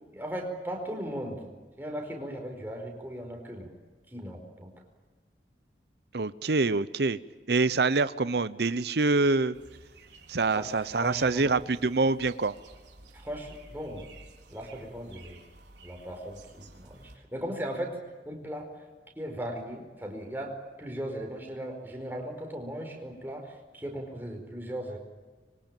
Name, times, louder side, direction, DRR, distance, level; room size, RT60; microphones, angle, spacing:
voice 1, 0.1-3.7 4.1-4.7 10.5-11.5 13.1-14.1 14.5-15.4 15.8-18.0 18.2-18.7 19.2-25.0, equal, 10° right, 2 dB, 4.8 m, -38 dB
voice 2, 6.1-7.2 7.5-9.6 10.3-12.5, right 3 dB, 70° right, 15 dB, 0.7 m, -25 dB
sound 1, 9.5-17.2, right 2 dB, 90° right, 4.0 m, -53 dB
26.0 x 23.5 x 9.0 m, 1.3 s
head